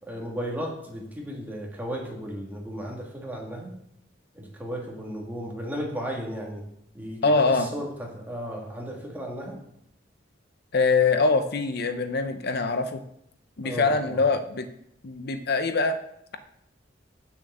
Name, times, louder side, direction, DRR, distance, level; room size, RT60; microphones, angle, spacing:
voice 1, 0.0-3.7 4.3-6.6 6.9-9.6 13.6-14.2, equal, 10° right, -1 dB, 2.1 m, -35 dB
voice 2, 7.2-7.7 10.7-13.0 13.6-14.7 15.0-16.0, left 4 dB, 55° left, 9 dB, 0.7 m, -23 dB
8.8 x 7.0 x 6.8 m, 0.75 s
head